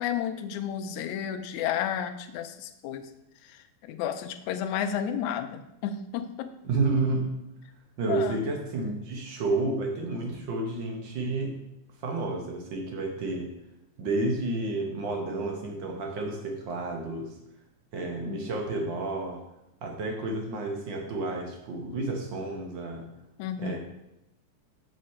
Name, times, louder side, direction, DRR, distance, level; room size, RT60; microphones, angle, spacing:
voice 1, 0.0-3.0 3.5-3.6 3.9-6.5 8.1-8.4 18.2-18.5 23.4-23.8, left 9 dB, 75° left, 8 dB, 1.9 m, -32 dB
voice 2, 6.6-7.3 8.0-11.6 12.0-13.5 14.0-17.3 17.9-19.4 19.8-23.1 23.6-23.8, right 3 dB, 60° right, 2 dB, 1.3 m, -30 dB
7.4 x 6.5 x 4.3 m, 0.87 s
omnidirectional pair, 3.6 m